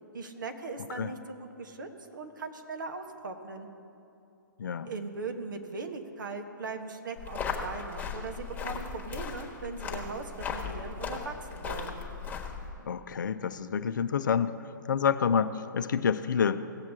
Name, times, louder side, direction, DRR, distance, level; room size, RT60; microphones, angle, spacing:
voice 1, 0.1-3.7 4.8-12.0, right 4 dB, 70° right, 5 dB, 1.3 m, -39 dB
voice 2, 4.6-4.9 12.8-14.5 14.9-16.6, left 7 dB, 65° left, 12 dB, 0.5 m, -28 dB
sound 1, 7.2-12.7, left 6 dB, 15° left, 1.3 m, -37 dB
17.5 x 7.3 x 3.6 m, 2.8 s
figure-of-eight pair, 125°, 11 cm